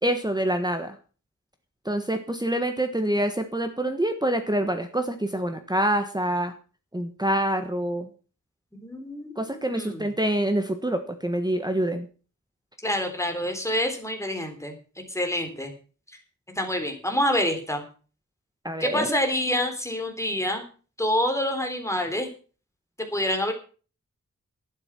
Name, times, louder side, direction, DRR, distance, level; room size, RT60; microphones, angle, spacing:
voice 1, 0.0-1.0 1.8-6.5 6.9-8.1 9.4-12.1 18.6-19.1, right 1 dB, 15° right, 7 dB, 1.4 m, -26 dB
voice 2, 8.8-9.3 9.7-10.1 12.8-14.8 15.1-15.7 16.1-16.2 16.6-17.9 18.8-20.7 21.0-22.3 23.1-23.5, left 1 dB, 10° left, 4 dB, 3.6 m, -27 dB
12.0 x 10.5 x 6.0 m, 0.37 s
wide cardioid pair, 115°, 32 cm